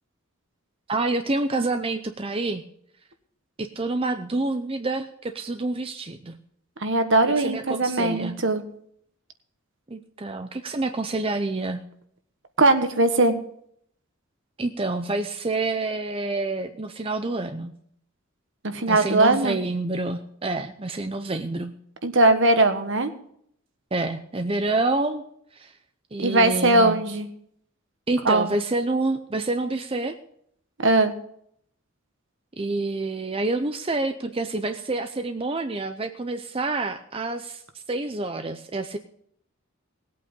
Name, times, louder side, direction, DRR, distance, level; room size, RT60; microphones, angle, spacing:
voice 1, 0.9-2.6 3.6-6.4 7.4-8.4 9.9-11.8 14.6-17.7 18.9-21.7 23.9-25.2 25.5-25.7 26.1-27.0 28.1-30.1 32.6-39.0, right 2 dB, 25° right, 7 dB, 0.6 m, -28 dB
voice 2, 6.8-8.6 12.6-13.3 18.6-19.6 22.0-23.1 26.2-27.3 28.2-28.5 30.8-31.1, right 2 dB, 60° right, 8 dB, 1.4 m, -20 dB
19.5 x 8.5 x 5.4 m, 0.68 s
head